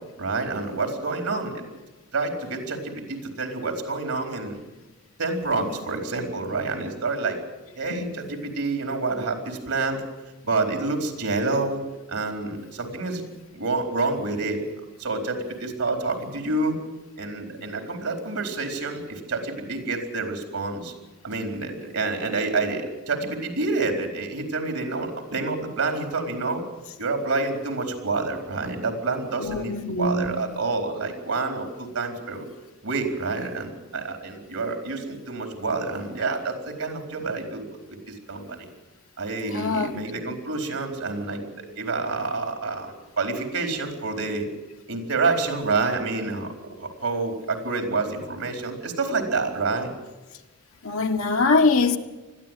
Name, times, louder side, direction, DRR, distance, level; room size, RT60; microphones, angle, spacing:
voice 1, 0.2-1.6 2.1-4.6 5.2-7.4 7.8-10.0 10.4-11.8 12.1-13.2 13.5-14.6 15.0-16.8 17.2-20.9 21.2-26.6 27.0-29.7 30.0-32.5 32.8-37.6 38.1-38.7 39.2-44.5 44.9-49.9, right 3 dB, 90° right, 4.3 m, -28 dB
voice 2, 5.6-5.9 7.9-8.1 29.4-30.4 39.5-40.0 50.8-52.0, left 3 dB, 65° left, 1.4 m, -23 dB
21.0 x 14.5 x 9.1 m
head